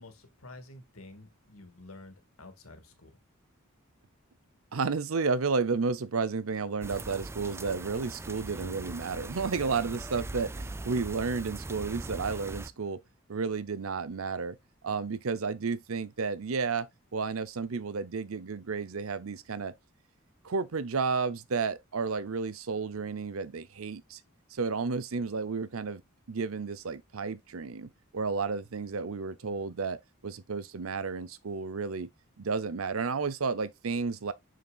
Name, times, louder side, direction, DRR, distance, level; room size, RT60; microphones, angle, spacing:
voice 1, 0.0-3.2, left 2 dB, 85° left, 2.1 m, -50 dB
voice 2, 4.7-13.0 13.3-14.6 14.8-19.7 20.4-24.2 24.5-26.0 26.3-30.0 30.2-32.1 32.4-34.3, right 4 dB, 75° right, 0.7 m, -32 dB
sound 1, 6.8-12.7, right 2 dB, 10° right, 0.3 m, -40 dB
6.9 x 6.5 x 2.4 m
head